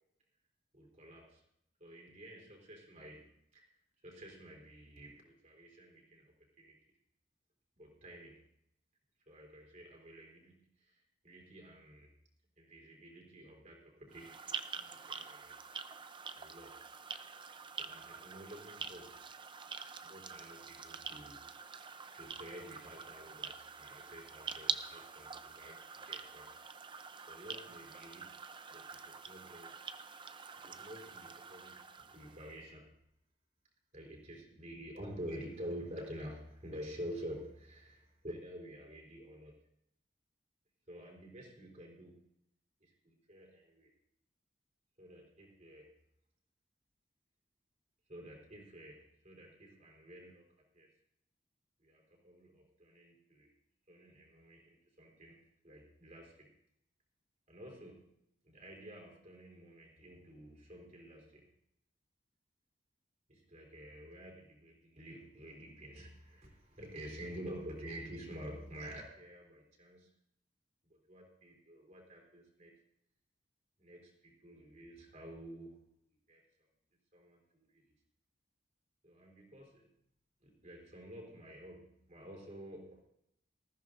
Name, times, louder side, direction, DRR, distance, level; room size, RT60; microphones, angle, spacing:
voice 1, 0.7-1.4 1.8-3.7 4.0-6.7 7.8-8.4 9.3-12.1 12.6-15.5 16.3-16.8 17.8-19.3 20.0-26.5 26.8-26.9 27.3-29.8 30.6-33.0 33.9-39.6 40.9-42.3 42.8-43.9 45.0-45.9 48.1-50.5 50.7-50.9 51.8-53.5 53.9-56.5 57.5-58.1 58.5-61.5 63.3-70.1 70.9-72.7 73.8-75.8 76.3-76.4 77.1-77.8 79.0-79.9 80.4-83.0, equal, 40° right, 0 dB, 3.9 m, -50 dB
sound 1, 14.1-32.6, right 6 dB, 25° right, 0.6 m, -46 dB
19.5 x 14.5 x 2.6 m, 0.78 s
head